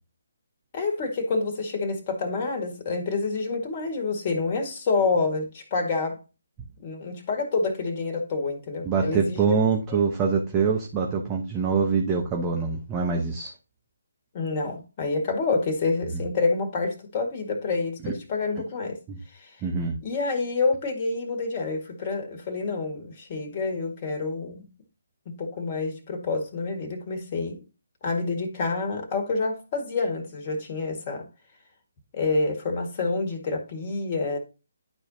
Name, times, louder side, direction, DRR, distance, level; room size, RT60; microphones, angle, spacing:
voice 1, 0.7-6.2 6.8-9.6 9.9-10.0 14.3-19.0 19.3-19.5 20.0-24.7 25.3-27.6 28.0-31.3 32.1-34.4, left 3 dB, 30° left, 1.8 m, -28 dB
voice 2, 8.8-13.5 18.0-18.1 19.1-19.2 19.6-19.9, right 5 dB, 20° right, 1.0 m, -24 dB
11.5 x 4.4 x 2.8 m
figure-of-eight pair, 145°, 0 cm